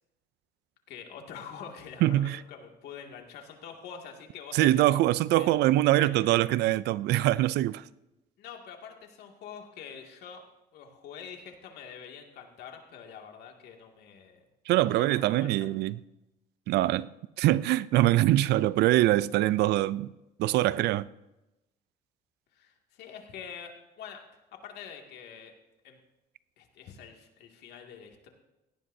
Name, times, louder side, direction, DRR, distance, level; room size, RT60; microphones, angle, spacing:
voice 1, 0.9-4.8 5.3-5.5 6.0-6.1 8.4-10.4 10.7-14.4 14.9-15.5 22.5-24.2 24.6-25.5 25.8-26.0 26.6-28.3, left 7 dB, 75° left, 2.3 m, -45 dB
voice 2, 2.0-2.4 4.5-7.8 14.7-16.0 16.7-17.1 17.4-20.1 20.4-21.1, right 15 dB, 80° right, 0.5 m, -23 dB
17.5 x 17.0 x 2.7 m
cardioid pair, 110°, 17 cm